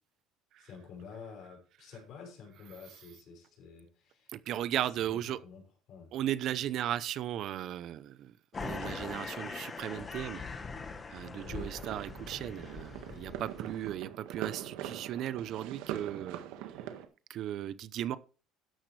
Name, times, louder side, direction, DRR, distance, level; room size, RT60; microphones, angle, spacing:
voice 1, 0.6-4.4 4.8-6.1 11.4-11.8, left 5 dB, 50° left, 6.1 m, -50 dB
voice 2, 4.3-5.4 6.1-10.4 11.1-16.4 17.3-18.2, right 11 dB, 50° right, 0.7 m, -36 dB
sound 1, 8.5-13.9, left 4 dB, 20° left, 1.3 m, -42 dB
sound 2, 11.4-17.1, right 11 dB, 80° right, 1.7 m, -43 dB
13.0 x 10.5 x 3.3 m
cardioid pair, 145°, 0 cm